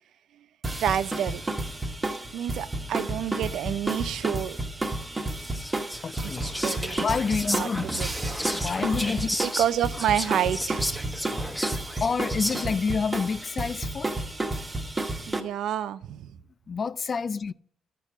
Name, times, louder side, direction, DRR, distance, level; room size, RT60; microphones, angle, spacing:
sound 1, 0.6-15.4, right 2 dB, 20° right, 1.2 m, -31 dB
voice 1, 0.8-1.4 2.3-4.6 6.2-7.2 7.5-8.4 9.4-11.0 15.3-16.3, right 10 dB, 75° right, 0.4 m, -29 dB
Whispering, 5.4-12.9, equal, 5° left, 1.3 m, -33 dB
voice 2, 6.0-6.5 7.0-7.8 8.5-9.4 11.3-11.4 12.0-14.1 16.7-17.5, left 5 dB, 40° left, 0.3 m, -28 dB
12.5 x 4.5 x 6.1 m
cardioid pair, 90°, 0 cm